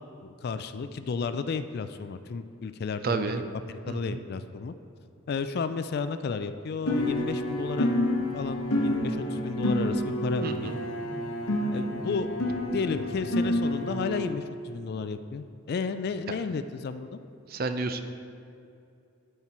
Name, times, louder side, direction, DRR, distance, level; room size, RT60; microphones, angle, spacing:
voice 1, 0.2-4.7 5.3-7.9 8.3-10.7 11.7-12.3 12.7-17.2, left 5 dB, 45° left, 11 dB, 0.3 m, -33 dB
voice 2, 3.0-3.4 3.9-4.2 10.4-10.8 17.5-18.0, right 3 dB, 45° right, 8 dB, 0.4 m, -30 dB
sound 1, 6.9-14.3, left 1 dB, 85° left, 1.1 m, -29 dB
12.0 x 4.5 x 4.3 m, 2.6 s
head